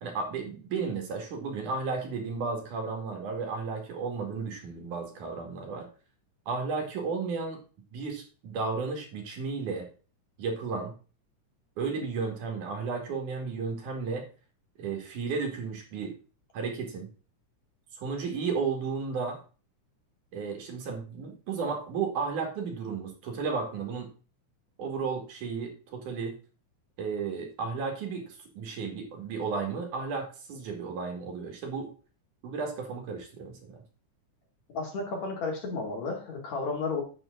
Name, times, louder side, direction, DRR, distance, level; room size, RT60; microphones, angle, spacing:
voice 1, 0.0-5.9 6.5-7.6 7.9-9.9 10.4-10.9 11.8-14.3 14.8-16.2 16.5-17.1 18.0-19.4 20.3-24.1 24.8-26.4 27.0-31.9 32.4-33.8, right 5 dB, 75° right, 3 dB, 3.5 m, -33 dB
voice 2, 34.7-37.0, left 3 dB, 60° left, 0 dB, 3.8 m, -32 dB
9.1 x 7.7 x 3.9 m, 0.37 s
omnidirectional pair, 3.6 m